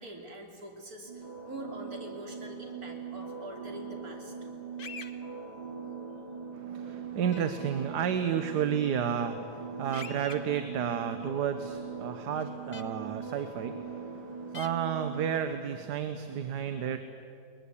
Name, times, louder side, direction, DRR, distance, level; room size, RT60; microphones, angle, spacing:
voice 1, 0.0-4.3, right 1 dB, 60° right, 1 dB, 3.6 m, -44 dB
sound 1, 1.1-15.4, right 6 dB, 25° right, 3.2 m, -41 dB
sound 2, 4.8-5.1 7.3-7.4 9.9-10.4 12.7-12.8 14.5-14.7, left 6 dB, 40° left, 0.9 m, -42 dB
voice 2, 6.5-17.0, right 8 dB, 75° right, 9 dB, 1.5 m, -32 dB
21.5 x 21.0 x 8.4 m, 2.4 s
omnidirectional pair, 1.8 m